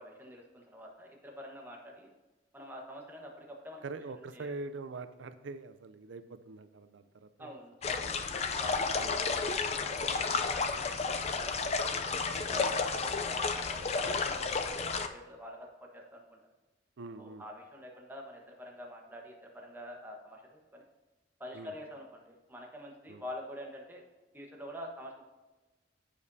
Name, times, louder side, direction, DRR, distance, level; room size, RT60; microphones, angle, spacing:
voice 1, 0.0-2.1 2.5-3.8 4.3-4.5 7.4-8.2 8.6-11.8 12.3-12.7 13.0-16.4 17.2-20.8 21.4-24.0 24.3-25.2, equal, 10° right, -1 dB, 1.2 m, -46 dB
voice 2, 3.8-7.6 8.0-8.1 8.9-9.2 12.5-13.0 17.0-17.4 21.5-21.7 23.1-23.2, right 3 dB, 90° right, 10 dB, 0.5 m, -44 dB
sound 1, 7.8-15.1, left 4 dB, 35° left, 0.5 m, -32 dB
14.5 x 5.1 x 2.7 m, 1.2 s
head